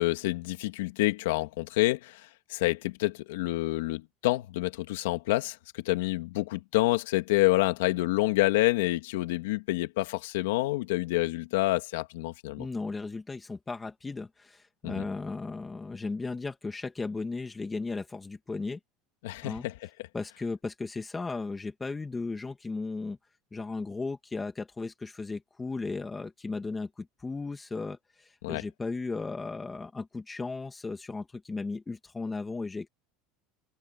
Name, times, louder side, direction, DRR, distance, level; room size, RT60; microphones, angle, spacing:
voice 1, 0.0-12.7 14.8-15.0 19.2-19.7 28.4-28.6, left 18 dB, 90° left, 2.3 m, -28 dB
voice 2, 12.6-18.8 19.4-19.7 20.1-23.2 23.5-32.9, left 3 dB, 10° left, 2.5 m, -36 dB
open air
supercardioid pair, 150°, 0 cm